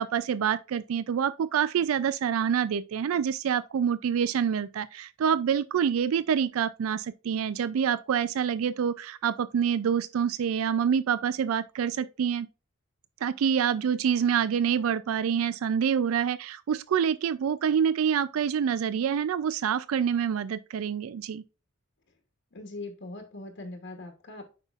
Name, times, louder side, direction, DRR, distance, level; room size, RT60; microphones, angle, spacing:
voice 1, 0.0-12.5 13.2-21.4, right 8 dB, 90° right, 0.4 m, -26 dB
voice 2, 22.5-24.4, left 2 dB, 55° left, 1.0 m, -41 dB
8.0 x 5.4 x 2.4 m
head